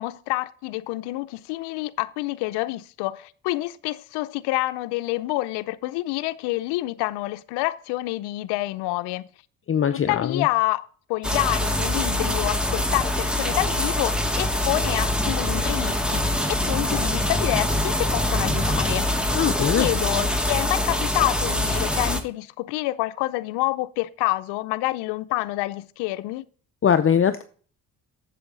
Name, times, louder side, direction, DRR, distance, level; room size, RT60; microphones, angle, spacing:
voice 1, 0.0-9.3 10.1-19.1 19.7-26.4, left 19 dB, 85° left, 0.6 m, -28 dB
voice 2, 9.7-10.5 19.3-19.9 26.8-27.4, left 8 dB, 35° left, 0.6 m, -21 dB
sound 1, 11.2-22.2, left 1 dB, ahead, 1.6 m, -24 dB
7.9 x 7.5 x 3.9 m
supercardioid pair, 75°, 40 cm